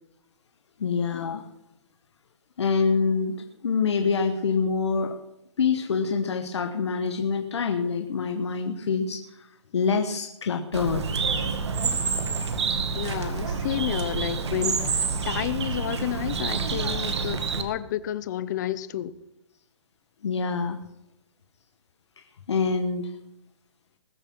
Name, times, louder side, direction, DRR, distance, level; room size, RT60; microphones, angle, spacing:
voice 1, 0.8-1.4 2.6-3.4 3.6-5.1 5.6-9.5 9.7-11.0 20.2-20.8 22.2-23.1, left 5 dB, 75° left, 6 dB, 1.3 m, -26 dB
Bird, 10.7-17.6, right 5 dB, 70° right, 2.2 m, -28 dB
voice 2, 13.0-19.1, left 12 dB, 40° left, 17 dB, 0.7 m, -31 dB
20.5 x 7.1 x 6.1 m, 0.89 s
hypercardioid pair, 155°, 15 cm